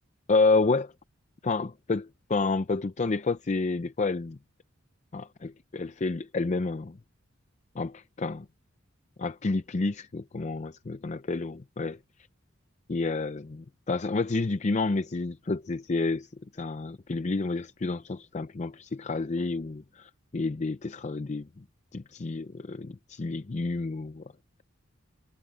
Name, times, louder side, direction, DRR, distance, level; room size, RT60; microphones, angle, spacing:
voice 1, 0.3-0.9 1.4-4.4 5.1-7.0 7.8-8.5 9.2-12.0 12.9-21.6 21.9-24.3, left 3 dB, 35° left, 0.5 m, -29 dB
head